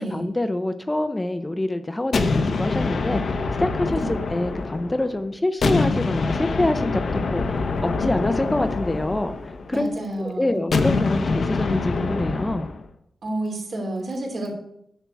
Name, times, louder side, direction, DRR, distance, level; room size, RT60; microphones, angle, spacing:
voice 1, 0.0-9.9 10.2-12.7, left 1 dB, 15° left, 9 dB, 0.6 m, -26 dB
sound 1, 2.1-5.1 5.6-9.9 10.7-12.8, left 3 dB, 65° left, 0.9 m, -25 dB
voice 2, 9.7-10.6 13.2-14.5, right 1 dB, 60° right, -1 dB, 3.0 m, -30 dB
10.0 x 7.0 x 4.6 m, 0.76 s
wide cardioid pair, 110°, 0 cm